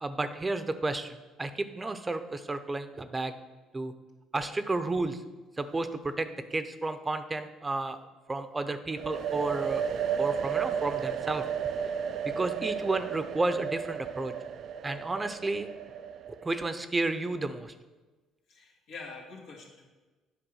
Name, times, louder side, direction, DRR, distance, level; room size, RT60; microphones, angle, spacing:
voice 1, 0.0-3.3 3.7-3.9 4.3-5.2 5.6-8.0 8.3-9.8 10.2-11.4 12.2-14.3 14.8-15.7 16.3-17.7, right 2 dB, 25° right, 10 dB, 0.7 m, -32 dB
sound 1, 9.0-16.6, right 8 dB, 60° right, 0.4 m, -33 dB
voice 2, 18.5-19.9, left 4 dB, 80° left, -2 dB, 2.2 m, -45 dB
8.9 x 4.7 x 6.3 m, 1.2 s
supercardioid pair, 70°, 0 cm